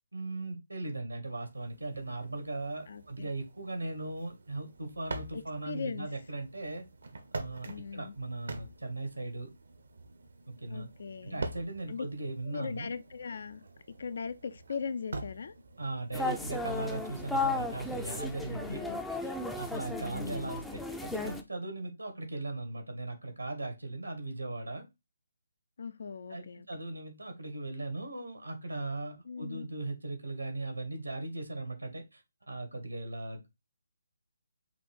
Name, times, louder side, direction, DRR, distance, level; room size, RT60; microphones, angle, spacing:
voice 1, 0.1-6.8 7.3-9.5 10.5-10.9 11.2-12.9 15.8-18.8 19.2-24.8 26.3-32.2 32.5-33.5, right 2 dB, 90° right, 1.8 m, -38 dB
sound 1, 1.4-18.0, right 3 dB, 65° right, 0.9 m, -46 dB
voice 2, 2.9-3.3 5.3-6.1 7.6-8.1 10.7-11.5 11.9-12.0 12.4-13.6 14.0-15.5 18.5-19.0 20.0-20.5 25.8-26.7 29.3-29.7, left 5 dB, 60° left, 0.5 m, -39 dB
sound 2, 16.1-21.4, left 3 dB, 5° left, 0.5 m, -35 dB
5.9 x 2.5 x 3.6 m
figure-of-eight pair, 150°, 0 cm